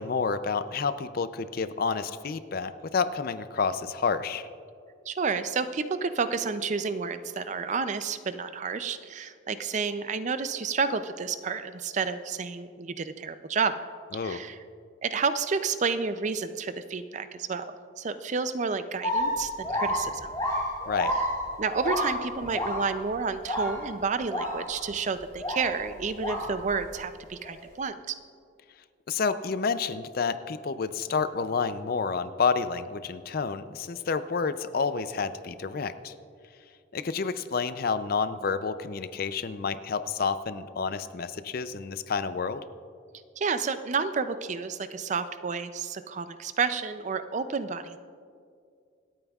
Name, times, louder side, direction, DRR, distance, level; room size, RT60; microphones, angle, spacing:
voice 1, 0.0-4.4 14.1-14.4 20.9-21.1 29.1-36.1 36.9-42.6, left 5 dB, 50° left, 12 dB, 0.4 m, -29 dB
voice 2, 5.1-13.7 14.1-14.6 15.0-20.3 21.6-28.1 43.4-48.0, right 5 dB, 40° right, 11 dB, 0.4 m, -30 dB
sound 1, 19.0-23.2 23.5-23.9 24.3-24.9 25.3-26.9 27.4-27.5, equal, 20° left, 3.2 m, -30 dB
26.0 x 8.7 x 2.4 m, 2.3 s
head